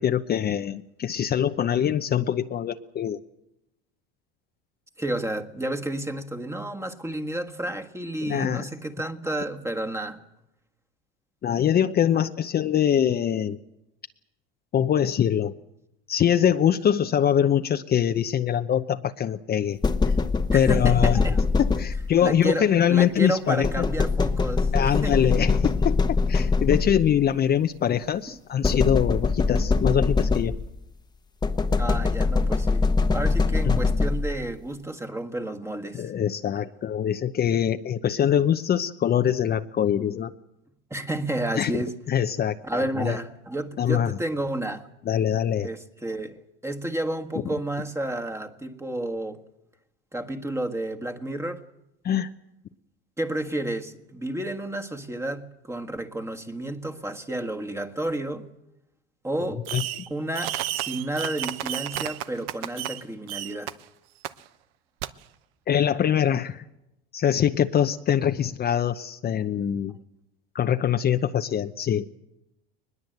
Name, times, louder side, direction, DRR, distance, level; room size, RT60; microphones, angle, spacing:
voice 1, 0.0-3.2 8.2-8.7 11.4-13.6 14.7-15.6 16.1-19.8 20.5-21.2 21.6-23.8 24.7-30.5 33.6-33.8 35.9-40.3 41.6-43.2 43.8-44.2 45.1-45.7 52.0-52.3 59.7-59.8 65.7-66.6 67.1-69.9 70.5-72.2, left 9 dB, 35° left, 0.8 m, -23 dB
voice 2, 5.0-10.2 20.5-21.4 22.2-25.4 31.8-36.1 40.9-42.0 42.6-44.9 45.6-49.4 50.1-51.6 53.2-58.5 59.2-59.6 60.1-63.7, right 1 dB, 10° right, 1.6 m, -31 dB
sound 1, 19.8-22.3 23.6-27.2 28.6-30.8 31.4-34.5, left 4 dB, 15° left, 1.1 m, -23 dB
Fireworks, 59.7-60.1 60.3-63.0 63.3-63.7 64.2-64.3 65.0-65.1, right 13 dB, 80° right, 0.9 m, -31 dB
21.5 x 20.5 x 7.9 m
supercardioid pair, 100°, 29 cm